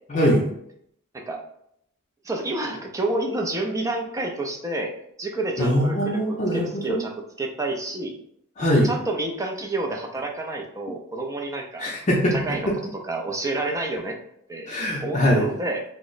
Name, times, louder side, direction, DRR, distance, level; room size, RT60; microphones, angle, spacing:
voice 1, 0.1-0.5 5.6-7.0 8.6-8.9 11.8-12.4 12.7-12.8 14.7-15.5, equal, 35° left, -4 dB, 0.5 m, -22 dB
voice 2, 2.2-4.9 5.2-7.1 7.4-8.1 8.8-11.9 12.4-12.7 13.1-14.2 14.5-14.7 15.0-15.8, right 2 dB, 15° right, 2 dB, 0.4 m, -29 dB
2.9 x 2.0 x 3.9 m, 0.72 s
head